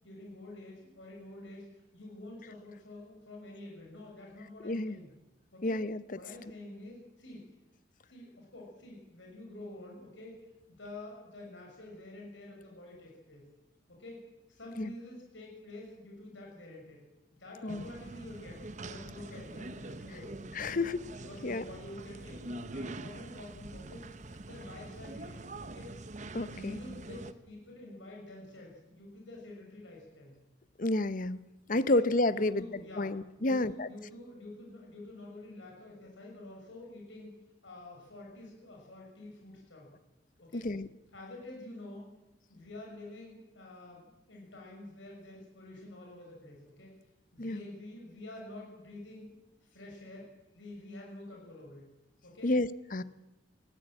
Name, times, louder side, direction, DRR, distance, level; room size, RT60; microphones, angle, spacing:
voice 1, 0.0-1.7 1.9-5.1 5.5-5.8 6.1-7.4 8.0-10.4 10.8-13.5 13.9-14.2 14.5-17.0 17.3-20.8 21.2-24.0 24.4-25.9 26.4-30.4 31.7-32.0 32.3-33.1 33.4-37.3 37.6-39.9 40.4-40.6 41.1-42.1 42.5-46.9 47.3-49.3 49.6-51.9 52.2-52.5 53.0-53.1, left 1 dB, 85° left, -1 dB, 6.1 m, -48 dB
voice 2, 4.6-5.0 5.6-6.0 14.8-14.9 17.6-17.8 20.5-21.0 21.4-21.6 26.3-26.8 30.8-31.4 31.7-32.6 33.0-33.9 40.5-40.9 47.4-47.6 52.4-53.0, left 2 dB, 45° left, 15 dB, 0.8 m, -30 dB
sound 1, 17.7-27.3, right 2 dB, 40° right, 0.9 m, -44 dB
19.5 x 17.0 x 8.9 m, 0.97 s
head